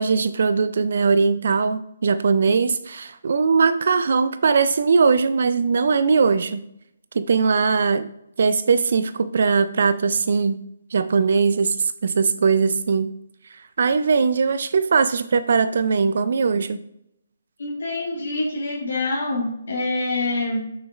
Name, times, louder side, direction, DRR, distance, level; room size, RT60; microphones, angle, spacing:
voice 1, 0.0-6.6 7.1-8.1 8.4-10.6 10.9-13.1 13.8-16.8, right 5 dB, 55° right, 12 dB, 0.3 m, -20 dB
voice 2, 17.6-20.6, left 2 dB, 65° left, -3 dB, 1.3 m, -26 dB
7.6 x 6.3 x 2.4 m, 0.78 s
figure-of-eight pair, 140°, 0 cm